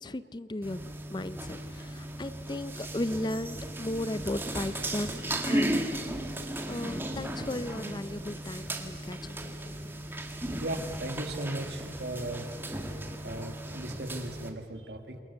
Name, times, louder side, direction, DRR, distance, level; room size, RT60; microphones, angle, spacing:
voice 1, 0.0-5.1 5.4-5.9 6.7-9.7, left 1 dB, 25° left, 14 dB, 0.5 m, -36 dB
sound 1, 0.6-14.5, right 1 dB, 10° right, 1.9 m, -36 dB
voice 2, 10.6-12.5 13.1-15.2, right 1 dB, 65° right, 6 dB, 2.2 m, -37 dB
28.0 x 22.5 x 6.9 m, 2.4 s
head